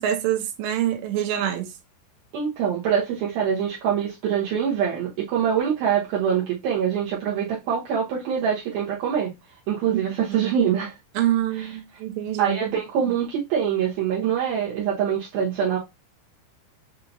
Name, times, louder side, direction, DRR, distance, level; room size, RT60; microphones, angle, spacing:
voice 1, 0.0-1.7 10.3-10.5 11.2-12.6, right 11 dB, 85° right, 2.9 m, -25 dB
voice 2, 2.3-9.3 9.7-10.9 11.5-11.8 12.4-15.8, right 8 dB, 70° right, 2.5 m, -24 dB
6.8 x 2.8 x 2.6 m
omnidirectional pair, 5.0 m